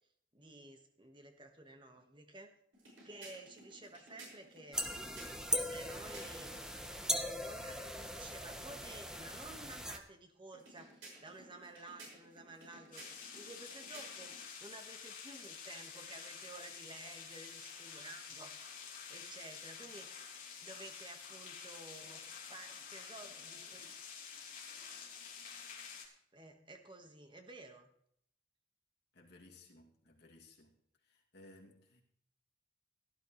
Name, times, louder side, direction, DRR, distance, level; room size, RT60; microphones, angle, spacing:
voice 1, 0.3-2.5 3.0-4.8 5.7-6.5 7.1-18.5 19.0-20.1 20.6-22.2 22.5-23.9 26.3-27.9, right 2 dB, 25° right, 1.5 m, -53 dB
sound 1, 2.7-6.6 10.5-14.4, right 2 dB, 75° right, 6.1 m, -56 dB
sound 2, 4.7-10.0, equal, 5° right, 1.0 m, -39 dB
sound 3, 12.9-26.1, left 6 dB, 45° left, 3.6 m, -49 dB
voice 2, 29.1-30.7 31.1-32.0, left 2 dB, 60° left, 2.5 m, -59 dB
17.0 x 12.0 x 3.2 m
head